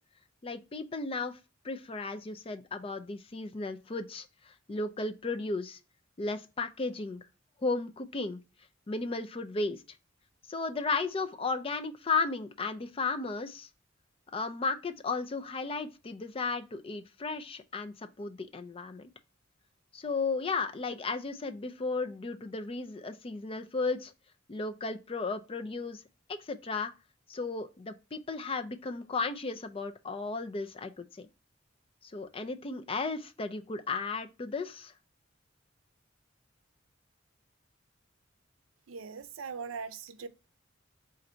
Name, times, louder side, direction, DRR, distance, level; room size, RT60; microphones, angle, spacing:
voice 1, 0.4-1.4 1.6-5.8 6.2-7.2 7.6-8.4 8.9-9.8 10.5-13.7 14.3-19.1 19.9-24.1 24.5-26.0 26.3-26.9 27.3-31.3 32.0-34.9, left 3 dB, 30° left, 0.4 m, -34 dB
voice 2, 38.9-40.3, right 5 dB, 90° right, 0.5 m, -40 dB
3.9 x 2.5 x 4.2 m
head